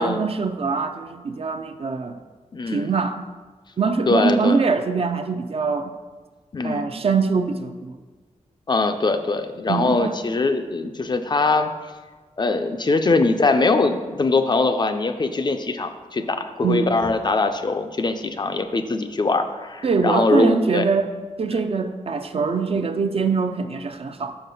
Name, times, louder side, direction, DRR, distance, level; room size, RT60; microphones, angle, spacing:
voice 1, 0.0-2.2 2.7-3.2 3.8-5.9 6.6-7.9 9.7-10.1 16.6-16.9 19.8-21.1 21.4-24.3, right 5 dB, 50° right, 8 dB, 0.4 m, -23 dB
voice 2, 2.5-2.9 4.1-4.6 6.5-6.9 8.7-11.7 12.4-20.9 21.5-21.6, left 3 dB, 35° left, 7 dB, 0.4 m, -22 dB
5.8 x 5.4 x 5.3 m, 1.4 s
wide cardioid pair, 155°, 13 cm